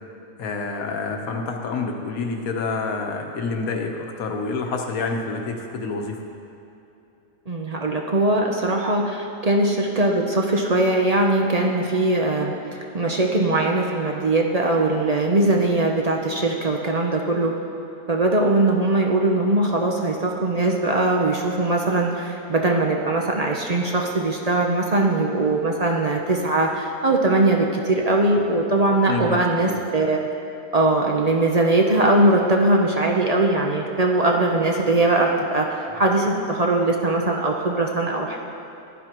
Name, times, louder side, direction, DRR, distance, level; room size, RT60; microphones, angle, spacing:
voice 1, 0.4-6.2 29.1-29.7, left 4 dB, 60° left, 3 dB, 1.4 m, -28 dB
voice 2, 7.5-12.5 12.9-17.6 18.1-30.2 30.7-38.4, right 2 dB, 50° right, 1 dB, 0.4 m, -21 dB
15.0 x 11.5 x 3.0 m, 2.8 s
omnidirectional pair, 1.8 m